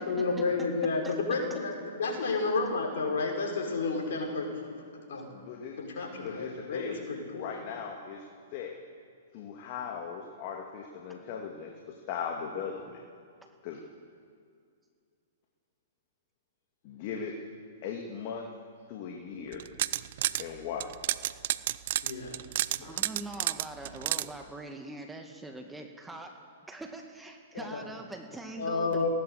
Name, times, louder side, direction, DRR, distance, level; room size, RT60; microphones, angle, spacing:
voice 1, 0.0-4.6 5.1-5.4 5.8-7.5 22.0-22.4 22.8-23.0 27.5-27.8 28.6-29.1, left 3 dB, 60° left, 1 dB, 5.8 m, -31 dB
voice 2, 5.3-5.8 6.1-7.0 7.3-8.2 8.5-8.8 9.3-13.0 13.6-13.8 16.8-17.5 17.8-18.5 18.9-19.6 20.4-20.9, left 6 dB, 45° left, 2 dB, 2.3 m, -38 dB
sound 1, 19.5-20.4 20.8-24.3, right 13 dB, 55° right, 0.6 m, -30 dB
voice 3, 22.8-26.3 26.7-29.1, right 2 dB, 5° right, 3 dB, 2.0 m, -43 dB
20.5 x 17.5 x 8.1 m, 2.3 s
figure-of-eight pair, 115°, 0 cm